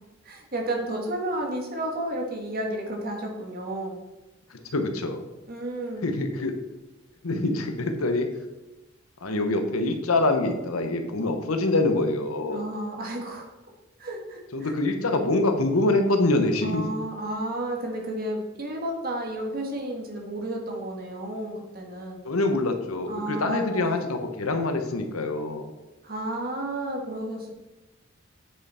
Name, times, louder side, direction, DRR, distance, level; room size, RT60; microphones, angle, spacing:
voice 1, 0.2-4.0 5.5-6.1 12.5-13.5 14.0-14.7 16.6-22.2 23.1-23.9 26.0-27.5, right 1 dB, 45° right, 1 dB, 1.6 m, -32 dB
voice 2, 4.5-5.2 6.0-6.6 7.2-8.3 9.2-12.6 14.5-16.8 22.2-25.7, left 2 dB, 85° left, 6 dB, 1.0 m, -25 dB
9.1 x 5.5 x 4.3 m, 1.0 s
head